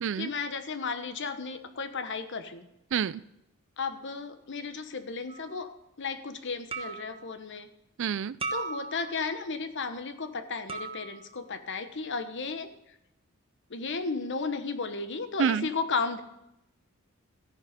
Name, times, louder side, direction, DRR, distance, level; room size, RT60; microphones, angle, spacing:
voice 1, 0.2-2.7 3.8-5.7 6.0-7.7 8.5-12.7 13.7-16.2, left 4 dB, 60° left, 9 dB, 1.1 m, -34 dB
voice 2, 2.9-3.2 8.0-8.4 15.4-15.7, right 7 dB, 60° right, 19 dB, 0.4 m, -27 dB
sound 1, 5.3-5.6 6.7-7.2 8.4-9.3 10.7-11.3, right 4 dB, 25° right, 1.2 m, -37 dB
14.0 x 10.5 x 5.1 m, 0.86 s
head